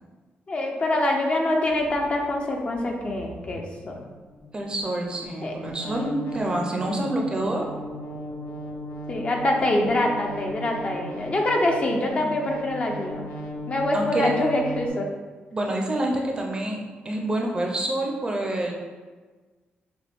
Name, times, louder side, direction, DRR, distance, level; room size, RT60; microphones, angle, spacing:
voice 1, 0.5-4.0 5.4-5.5 9.1-13.3 13.7-15.1, left 1 dB, 30° left, 1 dB, 0.5 m, -25 dB
sound 1, 1.6-14.9, equal, 85° left, 0.7 m, -37 dB
voice 2, 4.5-7.7 9.6-9.9 12.1-12.4 13.9-14.3 15.5-18.7, right 1 dB, 20° right, 1 dB, 0.5 m, -27 dB
6.6 x 2.2 x 3.4 m, 1.4 s
wide cardioid pair, 145°, 4 cm